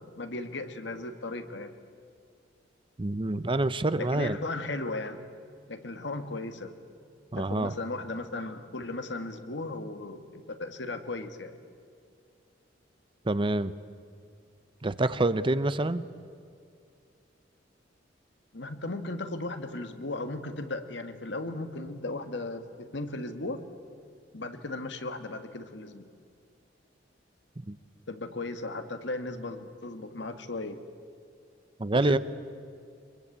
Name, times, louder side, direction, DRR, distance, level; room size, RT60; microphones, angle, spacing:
voice 1, 0.0-1.7 4.0-5.3 5.7-6.7 7.4-11.5 18.5-23.6 24.3-26.1 28.1-30.8 31.9-32.2, left 2 dB, 65° left, 8 dB, 1.7 m, -36 dB
voice 2, 3.0-4.4 7.3-7.7 13.2-13.7 14.8-16.1 27.7-27.8 31.8-32.2, right 2 dB, 25° right, 14 dB, 0.7 m, -27 dB
24.0 x 23.0 x 8.5 m, 2.4 s
head